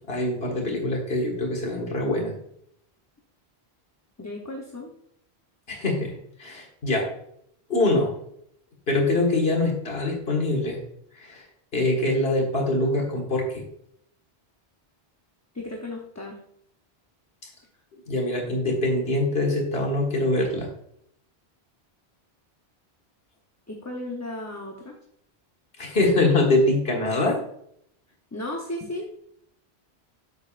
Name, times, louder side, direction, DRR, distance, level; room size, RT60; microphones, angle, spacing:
voice 1, 0.1-2.3 5.7-6.1 6.4-7.1 7.7-8.1 8.9-10.8 11.2-11.4 11.7-13.6 18.1-20.7 25.8-27.4, left 2 dB, 70° left, -1 dB, 1.8 m, -24 dB
voice 2, 4.2-4.9 15.5-16.4 23.7-25.0 28.3-29.1, left 1 dB, 20° left, 0 dB, 0.7 m, -34 dB
8.0 x 6.6 x 2.4 m, 0.70 s
omnidirectional pair, 1.1 m